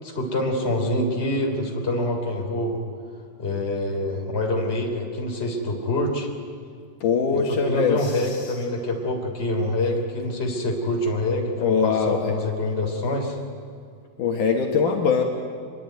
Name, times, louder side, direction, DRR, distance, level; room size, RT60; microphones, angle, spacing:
voice 1, 0.0-2.8 3.4-6.3 7.5-13.4, left 1 dB, 20° left, 1 dB, 3.6 m, -26 dB
voice 2, 7.0-8.5 11.6-12.3 14.2-15.2, left 5 dB, 70° left, 1 dB, 3.1 m, -22 dB
26.0 x 22.0 x 9.4 m, 2.2 s
omnidirectional pair, 3.9 m